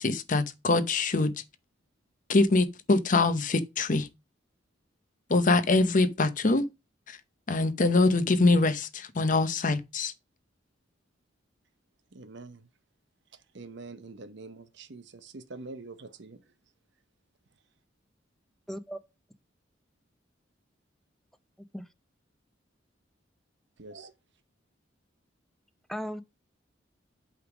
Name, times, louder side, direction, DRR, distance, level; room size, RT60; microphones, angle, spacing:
voice 1, 0.0-1.3 2.3-4.1 5.3-6.7 7.1-7.2 7.5-10.1, left 3 dB, 45° left, 0.8 m, -24 dB
voice 2, 12.1-12.6 13.5-16.4 23.8-24.1, right 3 dB, 65° right, 0.8 m, -45 dB
voice 3, 18.7-19.0 21.7-21.8 25.9-26.2, equal, ahead, 0.6 m, -35 dB
8.4 x 3.5 x 5.9 m
head